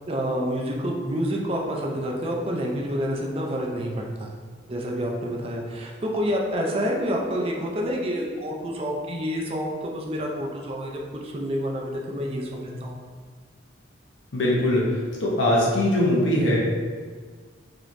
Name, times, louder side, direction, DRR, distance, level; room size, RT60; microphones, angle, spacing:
voice 1, 0.1-4.3 4.7-13.0, equal, 30° right, 0 dB, 0.5 m, -28 dB
voice 2, 14.3-16.6, left 1 dB, 90° left, -4 dB, 1.0 m, -21 dB
4.9 x 2.9 x 2.6 m, 1.5 s
head